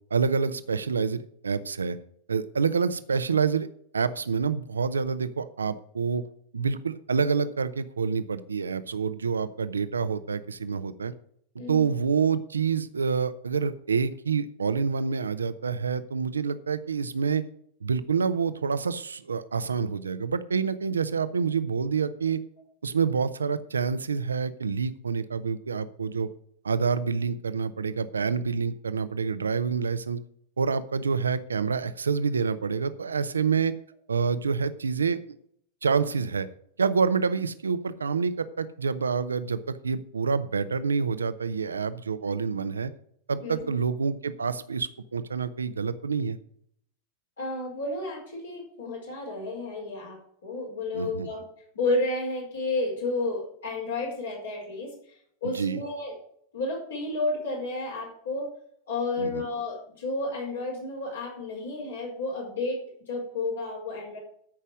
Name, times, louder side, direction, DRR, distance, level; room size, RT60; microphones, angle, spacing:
voice 1, 0.1-2.0 2.3-3.7 3.9-6.2 6.5-11.1 11.7-17.4 17.8-22.4 22.8-26.3 26.6-30.2 30.6-33.7 34.1-35.2 35.8-36.5 36.8-42.9 43.3-46.4 50.9-51.3 55.4-55.8 59.2-59.4, right 5 dB, 75° right, 13 dB, 0.7 m, -27 dB
voice 2, 11.6-12.0 43.4-43.8 47.4-51.4 51.7-54.9 55.4-56.1 56.5-58.5 58.9-62.8 63.1-64.2, left 2 dB, 65° left, -2 dB, 4.6 m, -31 dB
13.5 x 5.6 x 6.3 m, 0.67 s
figure-of-eight pair, 90°, 0 cm